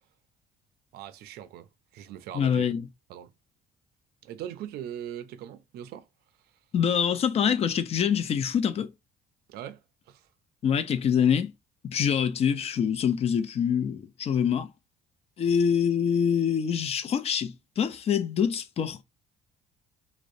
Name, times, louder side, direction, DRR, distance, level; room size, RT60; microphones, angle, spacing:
voice 1, 0.9-1.7 1.9-2.7 3.1-3.3 4.2-6.1 9.5-9.8 10.1-10.3, right 10 dB, 70° right, 0.4 m, -40 dB
voice 2, 2.3-2.9 6.7-8.9 10.6-11.5 11.8-14.7 15.4-19.0, left 7 dB, 40° left, 0.4 m, -25 dB
2.4 x 2.0 x 2.6 m
cardioid pair, 110°, 17 cm